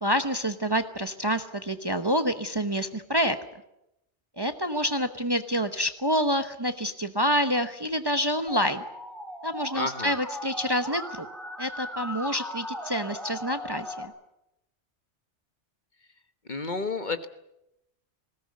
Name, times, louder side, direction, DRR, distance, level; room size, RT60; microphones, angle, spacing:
voice 1, 0.0-3.4 4.4-8.8 9.4-11.3 11.6-14.1, equal, 20° right, 8 dB, 1.0 m, -27 dB
Musical instrument, 8.5-14.0, equal, ahead, 3.4 m, -38 dB
voice 2, 9.8-10.1 16.5-17.3, left 3 dB, 40° left, 9 dB, 1.3 m, -31 dB
20.5 x 18.0 x 9.5 m, 0.86 s
omnidirectional pair, 1.2 m